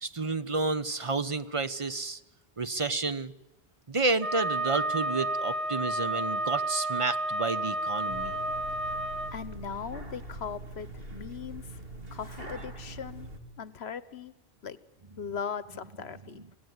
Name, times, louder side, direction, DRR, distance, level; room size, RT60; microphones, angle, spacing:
voice 1, 0.0-2.2 2.6-3.3 3.9-8.3 16.3-16.4, right 3 dB, 30° right, 11 dB, 1.0 m, -30 dB
Wind instrument woodwind instrument, 4.2-9.3, right 2 dB, 80° right, 2.5 m, -31 dB
sound 1, 8.1-13.4, right 2 dB, 60° right, 2.7 m, -43 dB
voice 2, 9.3-11.7 12.1-13.3 13.6-14.3 14.6-14.8 15.2-16.4, left 7 dB, 70° left, 15 dB, 1.3 m, -39 dB
26.5 x 17.5 x 9.6 m, 1.0 s
omnidirectional pair, 1.1 m